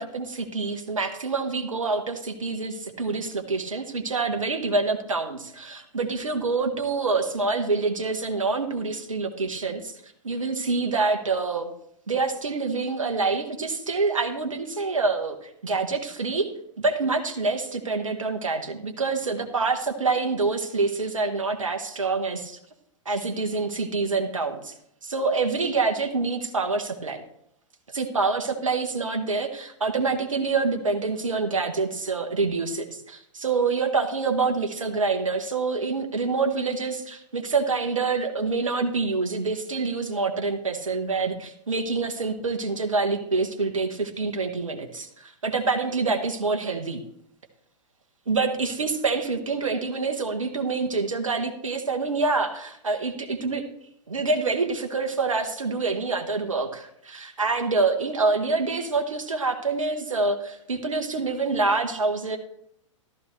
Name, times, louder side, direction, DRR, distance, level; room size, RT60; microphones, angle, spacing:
voice 1, 0.0-10.0 10.2-11.7 12.1-16.5 16.8-22.6 23.0-24.7 25.0-27.2 27.9-47.0 48.3-53.6 54.1-62.4, right 4 dB, 80° right, 4 dB, 1.3 m, -26 dB
14.0 x 13.0 x 3.2 m, 0.73 s
figure-of-eight pair, 110°, 17 cm